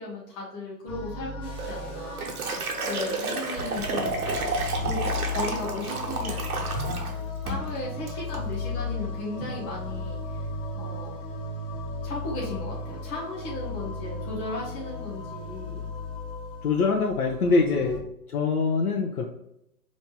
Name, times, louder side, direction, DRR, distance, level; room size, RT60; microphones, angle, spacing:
voice 1, 0.0-4.2 4.8-7.1 7.4-10.4 10.7-11.2 12.0-15.9 17.8-17.9, left 2 dB, 15° left, -5 dB, 0.6 m, -36 dB
sound 1, 0.9-18.0, left 3 dB, 40° left, 1.4 m, -35 dB
sound 2, 1.4-5.0, equal, 10° right, 0.8 m, -42 dB
Liquid, 1.6-7.1 7.5-7.7 8.1-8.4, right 3 dB, 65° right, 1.1 m, -31 dB
voice 2, 16.6-18.0 18.3-19.2, left 4 dB, 65° left, 0 dB, 0.8 m, -24 dB
5.2 x 3.1 x 2.2 m, 0.81 s
figure-of-eight pair, 125°, 47 cm